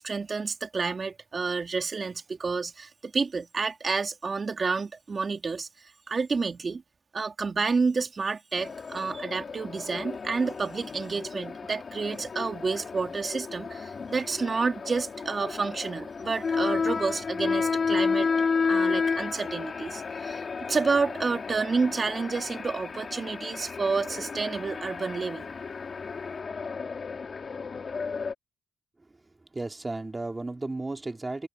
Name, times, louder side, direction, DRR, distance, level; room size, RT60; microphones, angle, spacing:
voice 1, 0.0-6.8 7.1-18.3 18.6-25.5, right 4 dB, 35° right, 2.9 m, -30 dB
sound 1, 8.6-28.3, left 5 dB, 40° left, 3.3 m, -32 dB
voice 2, 29.5-31.5, right 2 dB, 20° right, 3.3 m, -34 dB
cardioid pair, 90°, 0 cm